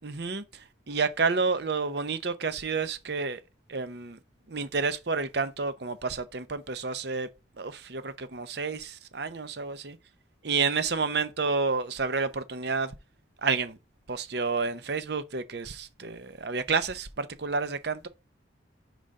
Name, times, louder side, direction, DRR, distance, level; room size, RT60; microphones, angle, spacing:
voice 1, 0.0-0.4 0.9-3.4 3.7-4.2 4.5-7.3 7.6-10.0 10.4-12.9 13.4-13.8 14.1-18.1, right 4 dB, 55° right, 0.7 m, -30 dB
4.9 x 3.8 x 5.3 m
head